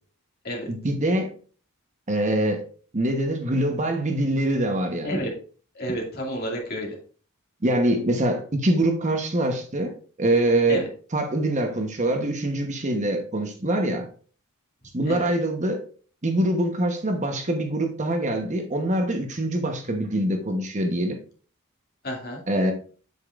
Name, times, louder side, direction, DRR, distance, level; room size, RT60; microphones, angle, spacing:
voice 1, 0.8-1.3 2.1-2.6 2.9-5.1 7.6-9.9 10.2-10.8 11.1-14.1 14.9-15.8 16.2-21.2 22.5-22.7, right 1 dB, 35° right, 4 dB, 1.0 m, -24 dB
voice 2, 5.7-7.0 10.7-10.9 15.1-15.3 22.0-22.4, equal, 45° left, 0 dB, 2.2 m, -30 dB
8.1 x 7.0 x 2.5 m, 0.40 s
head